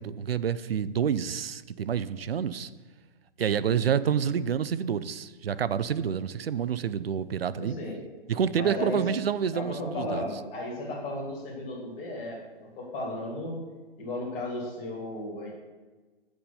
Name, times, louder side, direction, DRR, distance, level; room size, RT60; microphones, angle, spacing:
voice 1, 0.0-2.7 3.4-7.7 8.3-10.2, right 8 dB, 80° right, 16 dB, 0.5 m, -28 dB
voice 2, 7.6-8.0 8.6-9.0 9.5-13.6 14.0-15.5, left 2 dB, 25° left, -3 dB, 2.7 m, -35 dB
8.2 x 6.0 x 5.5 m, 1.3 s
figure-of-eight pair, 135°, 29 cm